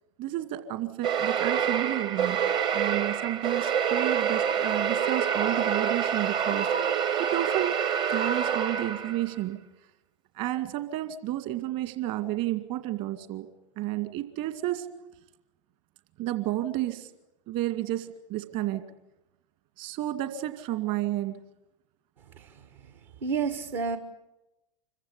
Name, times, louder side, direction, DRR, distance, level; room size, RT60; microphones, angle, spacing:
voice 1, 0.2-2.4 2.7-7.8 8.1-9.6 10.3-13.5 13.8-14.9 16.2-17.1 17.5-18.8 19.8-21.4, right 14 dB, 45° right, 9 dB, 2.2 m, -31 dB
sound 1, 1.0-9.3, right 8 dB, 25° right, 0.9 m, -27 dB
voice 2, 23.2-24.0, right 5 dB, 60° right, 8 dB, 1.7 m, -29 dB
26.0 x 15.0 x 9.9 m, 0.94 s
figure-of-eight pair, 95°, 18 cm